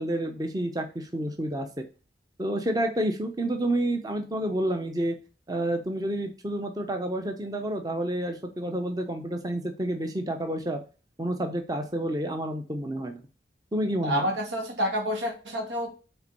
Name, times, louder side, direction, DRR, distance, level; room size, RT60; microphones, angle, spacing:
voice 1, 0.0-1.8 2.4-5.1 5.5-10.8 11.2-13.2 13.7-14.3, right 1 dB, 20° right, 5 dB, 0.7 m, -29 dB
voice 2, 14.0-15.9, equal, 85° right, 2 dB, 2.3 m, -28 dB
5.7 x 4.3 x 5.3 m, 0.34 s
head